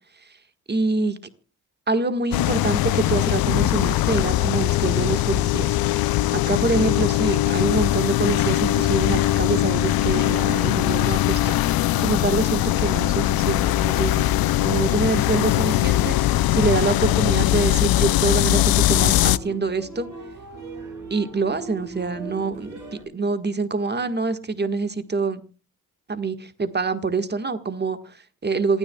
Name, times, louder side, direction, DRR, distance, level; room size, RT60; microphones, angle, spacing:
voice 1, 0.7-1.2 1.9-5.7 6.3-14.3 14.6-16.2 16.5-20.1 21.1-25.4 26.1-28.8, right 4 dB, 30° right, 9 dB, 1.6 m, -25 dB
sound 1, 2.3-19.4, left 15 dB, 70° left, 0.5 m, -21 dB
sound 2, 8.1-23.0, right 2 dB, 55° right, 7.3 m, -40 dB
27.5 x 9.8 x 2.3 m, 0.34 s
cardioid pair, 65°, 37 cm